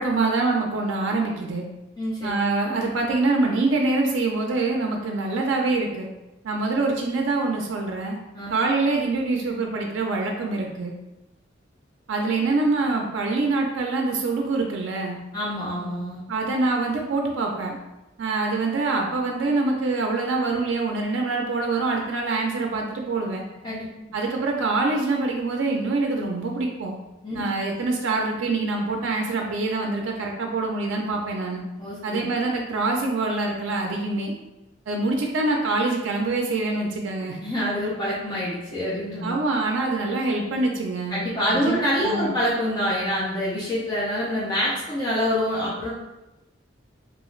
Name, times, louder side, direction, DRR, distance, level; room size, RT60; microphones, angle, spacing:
voice 1, 0.0-1.6 2.2-6.1 6.4-8.2 8.5-10.9 12.1-15.2 16.3-17.8 18.2-23.4 24.1-27.0 27.3-31.6 32.0-34.3 34.9-37.4 39.2-41.2 41.5-42.3, right 3 dB, 80° right, 1 dB, 0.4 m, -25 dB
voice 2, 2.0-2.3 8.3-8.5 15.3-16.2 23.6-23.9 27.2-27.4 31.8-32.3 37.4-39.3 41.1-45.9, equal, 20° left, -8 dB, 0.5 m, -26 dB
2.4 x 2.3 x 3.1 m, 1.0 s
head